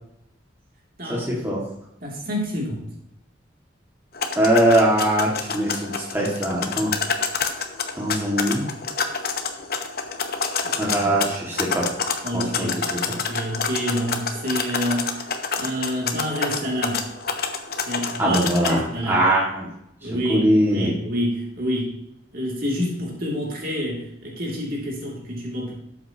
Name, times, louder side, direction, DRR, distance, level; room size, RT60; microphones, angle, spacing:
voice 1, 1.1-1.6 4.4-6.9 7.9-8.7 10.8-11.8 12.3-12.7 13.1-13.2 18.2-19.7 20.0-20.9, right 1 dB, 10° right, -5 dB, 2.0 m, -21 dB
voice 2, 2.0-2.8 10.6-11.2 12.2-15.3 15.6-17.0 17.9-19.2 20.0-22.0 22.3-25.7, equal, 50° right, -3 dB, 2.8 m, -28 dB
sound 1, 4.1-18.7, left 5 dB, 50° left, 0.9 m, -28 dB
12.5 x 8.1 x 2.9 m, 0.78 s
head